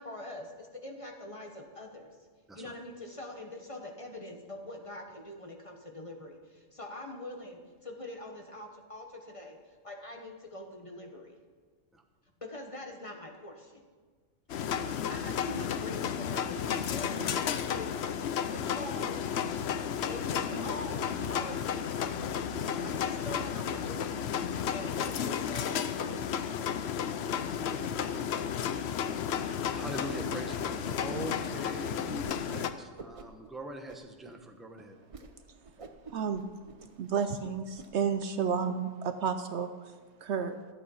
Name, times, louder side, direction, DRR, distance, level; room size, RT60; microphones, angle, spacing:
voice 1, 0.0-2.2 2.5-11.4 12.4-13.8 15.1-17.9 18.5-19.2 20.1-22.3 22.7-24.2 24.5-26.3, left 1 dB, 25° left, 2 dB, 1.1 m, -44 dB
sound 1, 14.5-32.7, left 8 dB, 65° left, 0.8 m, -33 dB
voice 2, 27.7-28.5 29.2-35.0, right 1 dB, ahead, 3 dB, 0.8 m, -43 dB
Whoosh swoosh swish, 32.2-32.7 33.0-33.5 33.9-34.4 34.7-34.8 35.1-35.3 35.6-37.9, right 4 dB, 35° right, 0.6 m, -48 dB
voice 3, 36.1-36.4 37.0-39.9 40.2-40.6, right 6 dB, 65° right, 9 dB, 0.8 m, -31 dB
12.5 x 8.5 x 5.5 m, 1.5 s
omnidirectional pair, 1.4 m